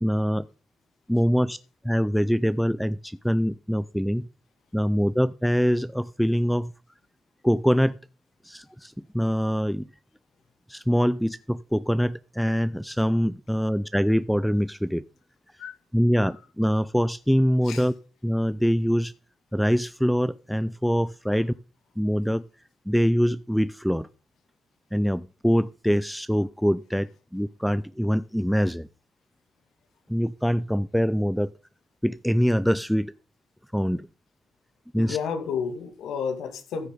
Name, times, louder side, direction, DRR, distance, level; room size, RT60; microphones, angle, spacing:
voice 1, 0.0-0.5 1.1-1.6 1.8-4.3 4.7-6.7 7.4-8.0 8.4-9.9 10.7-15.0 15.9-17.9 18.2-19.1 19.5-21.5 22.0-22.4 22.9-24.1 24.9-28.9 30.1-31.5 32.0-33.1 33.7-34.1 34.9-35.2, equal, ahead, 0.4 m, -24 dB
voice 2, 35.0-36.9, left 6 dB, 80° left, 2.5 m, -31 dB
14.5 x 6.6 x 3.9 m
cardioid pair, 90°, 0 cm